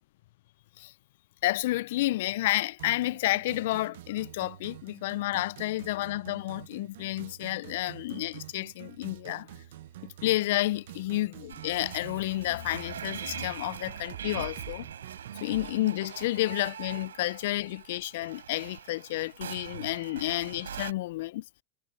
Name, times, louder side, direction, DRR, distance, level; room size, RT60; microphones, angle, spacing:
voice 1, 1.4-9.5 10.2-14.9 15.4-21.4, left 17 dB, 65° left, 0.4 m, -30 dB
sound 1, 2.8-15.7, right 14 dB, 70° right, 0.8 m, -47 dB
sound 2, 11.5-20.9, right 9 dB, 90° right, 4.0 m, -42 dB
hypercardioid pair, 110°, 0 cm